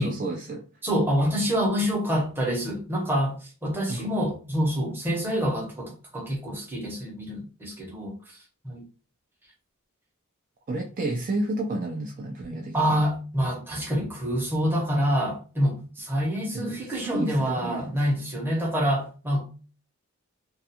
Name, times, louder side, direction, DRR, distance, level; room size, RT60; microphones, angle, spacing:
voice 1, 0.0-0.6 3.9-4.1 10.7-13.0 16.5-17.9, right 2 dB, 40° right, 0.3 m, -31 dB
voice 2, 0.8-8.2 8.6-8.8 12.7-19.5, equal, 10° right, 0.8 m, -26 dB
2.4 x 2.3 x 2.7 m
head